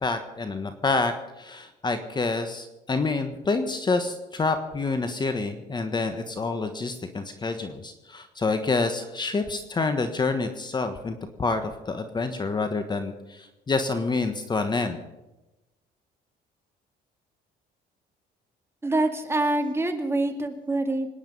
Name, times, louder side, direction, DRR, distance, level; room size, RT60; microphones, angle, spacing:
voice 1, 0.0-15.0, left 3 dB, 25° left, 8 dB, 1.4 m, -28 dB
voice 2, 18.8-21.1, right 2 dB, 15° right, 4 dB, 2.2 m, -25 dB
25.5 x 10.0 x 5.5 m, 1.0 s
cardioid pair, 110°, 17 cm